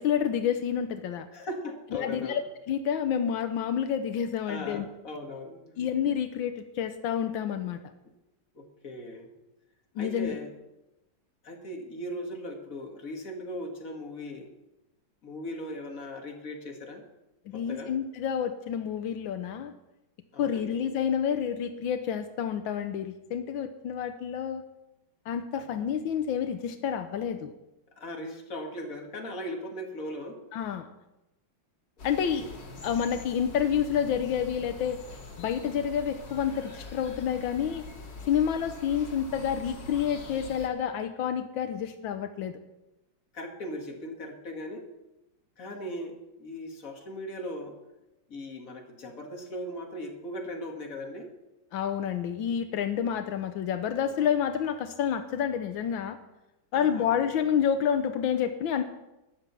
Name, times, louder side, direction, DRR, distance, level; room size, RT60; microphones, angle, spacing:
voice 1, 0.0-1.3 1.9-2.4 2.7-4.8 5.8-7.8 10.0-10.4 17.5-19.7 20.4-24.6 25.3-27.5 30.5-30.9 32.0-32.4 32.8-35.0 35.4-37.8 38.3-42.6 51.7-56.2 56.7-58.8, left 8 dB, 85° left, 8 dB, 1.6 m, -29 dB
voice 2, 1.3-2.4 4.5-5.8 8.5-9.3 10.0-10.5 11.4-14.5 15.2-17.0 17.5-17.9 20.3-20.8 25.6-25.8 28.0-30.4 32.2-32.5 43.3-44.9 45.6-47.8 48.3-51.3 56.7-57.3, left 1 dB, 45° left, 2 dB, 2.4 m, -39 dB
sound 1, 32.0-40.7, left 3 dB, 65° left, 2.8 m, -44 dB
13.5 x 10.0 x 6.9 m, 0.96 s
omnidirectional pair, 2.1 m